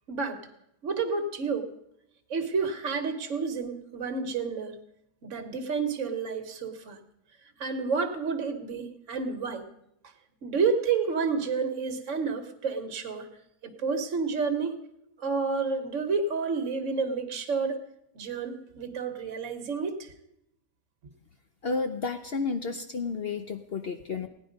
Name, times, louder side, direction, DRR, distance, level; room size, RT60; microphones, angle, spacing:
voice 1, 0.1-0.4 0.8-1.7 2.3-4.8 5.2-7.0 7.6-9.7 10.4-13.3 13.6-14.8 15.2-17.8 18.1-20.1, right 5 dB, 50° right, 8 dB, 1.5 m, -30 dB
voice 2, 21.6-24.3, left 4 dB, 60° left, 7 dB, 0.6 m, -31 dB
17.0 x 10.0 x 5.1 m, 0.78 s
omnidirectional pair, 1.8 m